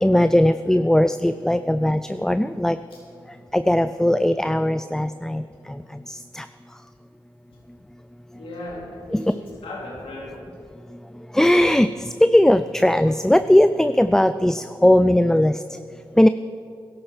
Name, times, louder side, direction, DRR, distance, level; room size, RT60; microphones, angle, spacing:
voice 1, 0.0-2.8 3.5-5.4 6.1-6.5 9.1-9.2 11.3-15.6 16.2-16.3, left 1 dB, 5° left, 12 dB, 0.4 m, -18 dB
voice 2, 8.3-10.3, left 1 dB, 85° left, -4 dB, 4.1 m, -36 dB
16.5 x 12.0 x 5.0 m, 2.4 s
cardioid pair, 60°, 9 cm